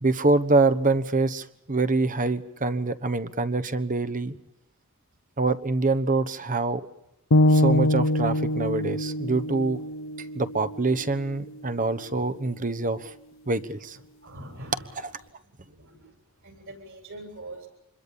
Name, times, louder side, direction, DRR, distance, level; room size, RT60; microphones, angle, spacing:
voice 1, 0.0-4.3 5.4-6.8 7.5-9.8 10.3-13.1 13.5-14.0, right 3 dB, 40° right, 13 dB, 1.2 m, -25 dB
sound 1, 7.3-11.4, left 1 dB, 65° left, 0.8 m, -24 dB
voice 2, 13.9-15.1 15.6-17.7, right 1 dB, 60° right, 6 dB, 7.8 m, -44 dB
26.5 x 22.0 x 7.1 m, 0.87 s
head